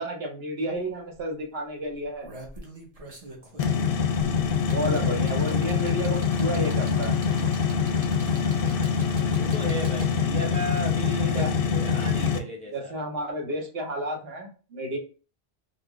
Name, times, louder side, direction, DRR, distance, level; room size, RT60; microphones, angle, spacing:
voice 1, 0.0-2.3 4.7-7.2 10.4-10.5 11.2-11.5 12.7-15.0, right 1 dB, 70° right, 1.1 m, -31 dB
sound 1, 0.7-0.8 1.1-1.4 1.9-10.4 11.5-11.6, right 2 dB, 40° right, 0.8 m, -45 dB
voice 2, 3.4-4.3 4.9-5.2 8.5-12.9, equal, 10° left, 0.6 m, -37 dB
sound 2, 3.6-12.4, left 6 dB, 65° left, 0.7 m, -25 dB
4.2 x 2.0 x 3.0 m
omnidirectional pair, 1.1 m